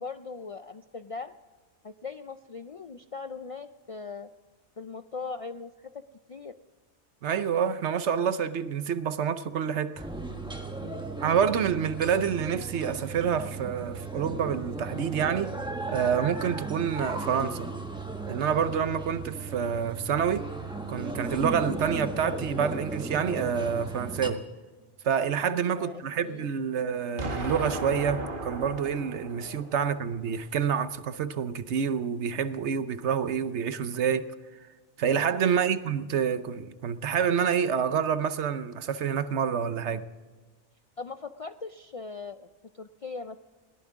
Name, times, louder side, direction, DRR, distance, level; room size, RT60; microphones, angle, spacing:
voice 1, 0.0-1.4 1.8-4.3 4.8-6.0 6.3-6.5 10.8-11.2 16.2-16.4 21.2-21.4 25.4-26.5 29.4-29.7 35.1-35.5 41.0-42.5 42.7-43.4, left 4 dB, 55° left, 0.4 m, -40 dB
voice 2, 7.2-10.1 11.2-15.5 15.9-17.7 18.3-20.5 20.9-24.4 25.0-34.3 35.0-40.1, right 7 dB, 75° right, 1.1 m, -28 dB
sound 1, 10.0-24.3, right 3 dB, 5° right, 1.3 m, -36 dB
Explosion, 27.2-30.2, right 2 dB, 50° right, 1.5 m, -35 dB
21.5 x 18.0 x 3.6 m
omnidirectional pair, 1.2 m